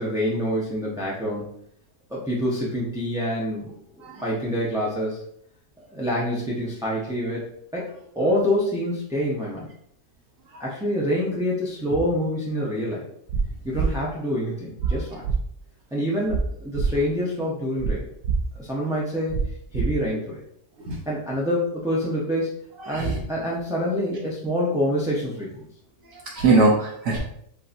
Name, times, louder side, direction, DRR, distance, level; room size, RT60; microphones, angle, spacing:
voice 1, 0.0-1.5 2.1-3.7 4.2-5.2 5.9-7.4 7.7-7.9 8.1-9.7 10.6-13.0 13.6-15.2 15.9-18.1 18.6-19.3 19.7-20.4 21.1-22.5 22.9-25.7, equal, 5° right, -6 dB, 0.5 m, -26 dB
sound 1, 13.3-13.4 13.7-13.9 14.8-14.9 15.2-15.4 16.3-16.4 16.7-16.9 17.8-17.9 18.2-18.4 19.3-19.4 19.7-19.9, right 5 dB, 85° right, 1.2 m, -23 dB
voice 2, 22.8-23.2 26.1-27.2, right 3 dB, 65° right, -2 dB, 1.2 m, -22 dB
7.4 x 2.7 x 2.6 m, 0.69 s
omnidirectional pair, 1.6 m